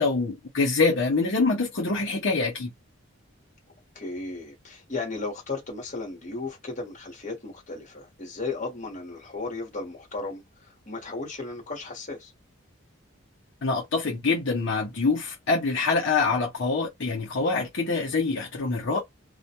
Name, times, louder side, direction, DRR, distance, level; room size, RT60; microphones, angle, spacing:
voice 1, 0.0-2.7 13.6-19.0, left 3 dB, 60° left, 0.7 m, -25 dB
voice 2, 3.9-12.3, left 3 dB, 35° left, 1.1 m, -35 dB
2.2 x 2.2 x 2.8 m
head